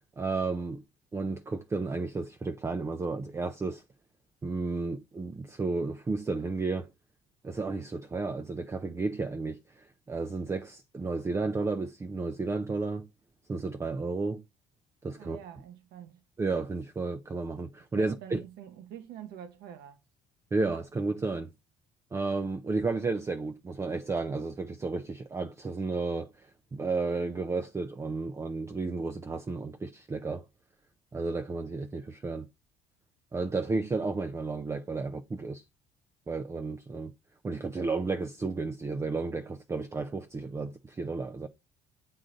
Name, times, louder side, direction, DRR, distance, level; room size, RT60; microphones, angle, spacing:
voice 1, 0.2-0.8 1.1-3.8 4.4-6.9 7.4-13.1 13.5-14.4 15.0-15.4 16.4-18.4 20.5-21.5 22.1-30.4 31.1-32.5 33.3-35.6 36.3-37.1 37.4-41.5, right 3 dB, 15° right, 0.4 m, -32 dB
voice 2, 15.2-16.2 18.0-20.0, right 9 dB, 75° right, 1.0 m, -46 dB
7.7 x 3.8 x 3.9 m
cardioid pair, 120°, 17 cm